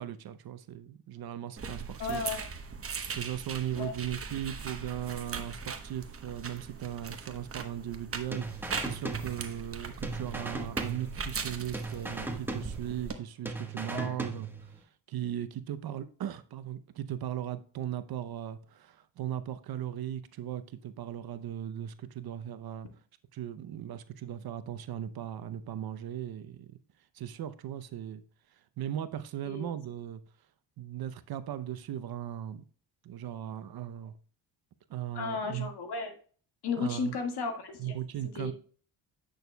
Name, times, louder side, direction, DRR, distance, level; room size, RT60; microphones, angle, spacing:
voice 1, 0.0-2.2 3.1-8.5 8.8-22.9 23.3-26.8 27.1-28.2 28.5-30.2 30.8-32.6 33.0-34.1 34.9-35.7 36.8-37.2 37.8-38.5, right 11 dB, 55° right, 0.7 m, -38 dB
sound 1, 1.6-13.1, right 5 dB, 30° right, 1.0 m, -40 dB
voice 2, 2.0-2.5 3.8-3.9 13.9-14.2 29.4-29.7 35.1-36.2 36.6-37.9 38.3-38.5, left 4 dB, 60° left, 1.8 m, -34 dB
sound 2, 8.3-9.8 10.0-11.5 11.7-13.2 13.5-14.8, right 3 dB, 5° right, 1.2 m, -38 dB
9.1 x 6.4 x 2.2 m
cardioid pair, 85°, 45 cm